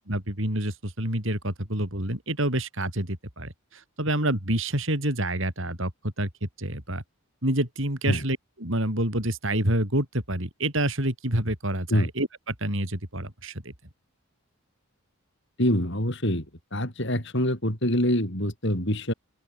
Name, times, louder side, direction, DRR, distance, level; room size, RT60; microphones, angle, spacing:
voice 1, 0.1-7.0 7.4-13.7, right 1 dB, 60° right, 5.6 m, -28 dB
voice 2, 15.6-16.5 16.7-19.1, left 1 dB, 55° left, 6.5 m, -25 dB
open air
head